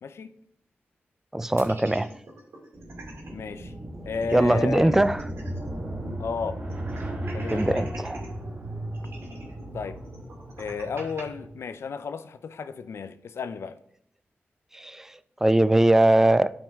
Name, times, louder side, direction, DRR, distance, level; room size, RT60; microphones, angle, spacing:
voice 1, 0.0-0.3 3.3-3.7 4.1-5.1 6.2-6.6 7.3-7.9 9.7-10.0 10.6-13.8, left 5 dB, 85° left, 0.5 m, -33 dB
voice 2, 1.3-2.1 4.3-5.2 7.5-8.2 14.7-16.5, right 1 dB, 10° right, 0.3 m, -21 dB
sound 1, 1.6-3.3 3.7-3.8 4.0-5.8 6.1-6.2 6.7-8.3 8.9-11.2, right 2 dB, 80° right, 2.4 m, -45 dB
sound 2, 2.7-11.5, right 1 dB, 30° right, 1.5 m, -36 dB
12.0 x 5.3 x 3.5 m
wide cardioid pair, 140°, 4 cm